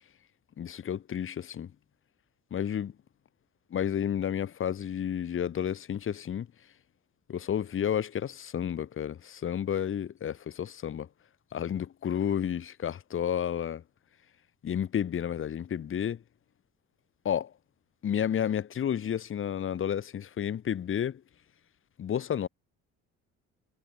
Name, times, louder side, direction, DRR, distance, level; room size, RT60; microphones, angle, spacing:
voice 1, 0.6-1.7 2.5-2.9 3.7-6.5 7.3-11.1 11.5-13.8 14.6-16.2 17.2-17.5 18.0-21.2 22.0-22.5, left 9 dB, 45° left, 1.4 m, -31 dB
cardioid pair, 105°, 30 cm